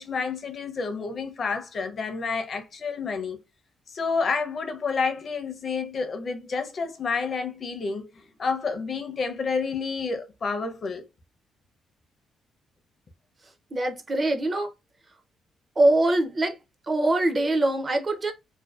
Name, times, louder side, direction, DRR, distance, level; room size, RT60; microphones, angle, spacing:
voice 1, 0.0-3.4 3.9-11.1, left 4 dB, 40° left, 0.5 m, -29 dB
voice 2, 13.7-14.7 15.8-16.6 16.9-18.3, right 2 dB, 30° right, 0.4 m, -23 dB
2.5 x 2.2 x 2.3 m
cardioid pair, 125°, 0 cm